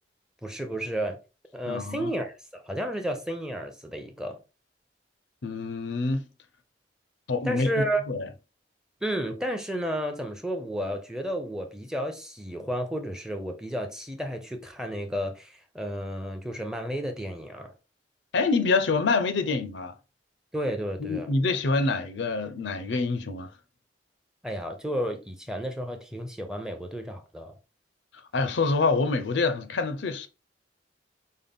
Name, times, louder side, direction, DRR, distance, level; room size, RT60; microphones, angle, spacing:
voice 1, 0.4-1.2 1.5-4.4 7.4-8.0 9.0-17.7 20.5-21.3 24.4-27.5, equal, 5° right, 0.6 m, -32 dB
voice 2, 1.7-2.1 5.4-6.3 7.3-8.3 18.3-19.9 21.0-23.5 28.3-30.3, left 3 dB, 75° left, 0.6 m, -26 dB
5.4 x 2.2 x 3.6 m
head